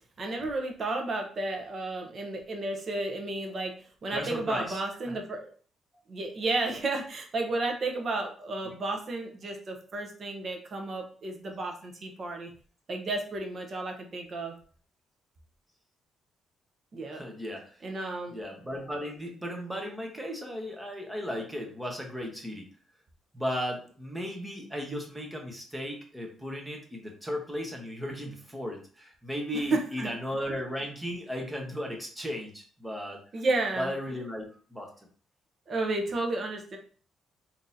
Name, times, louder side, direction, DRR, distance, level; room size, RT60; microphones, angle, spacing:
voice 1, 0.2-3.7 4.0-5.5 6.1-12.5 12.9-14.5 16.9-17.2 17.8-18.4 29.7-30.1 33.3-33.9 35.7-36.8, right 2 dB, 45° right, 3 dB, 0.8 m, -32 dB
voice 2, 4.1-4.8 5.1-5.2 17.1-17.9 18.3-22.7 23.3-33.2 33.8-34.9, equal, 10° right, 1 dB, 1.0 m, -35 dB
3.7 x 2.8 x 2.7 m, 0.43 s
cardioid pair, 90°, 0 cm